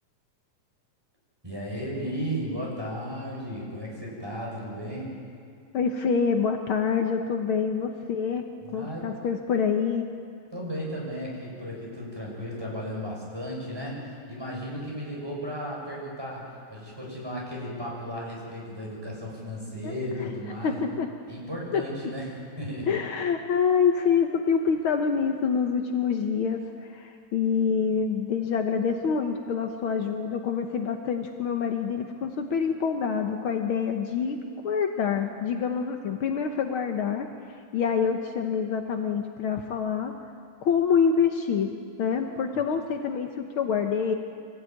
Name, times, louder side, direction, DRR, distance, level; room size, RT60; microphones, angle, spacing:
voice 1, 1.4-5.1 8.6-9.1 10.5-20.8 21.3-22.3 22.6-22.9 42.5-42.6, equal, 5° right, -3 dB, 6.8 m, -35 dB
voice 2, 5.7-8.4 8.7-10.1 19.8-19.9 20.6-21.1 21.7-21.8 22.9-40.1 40.6-41.7 42.0-44.1, left 6 dB, 85° left, 4 dB, 1.1 m, -26 dB
25.0 x 16.5 x 9.4 m, 2.4 s
omnidirectional pair, 4.0 m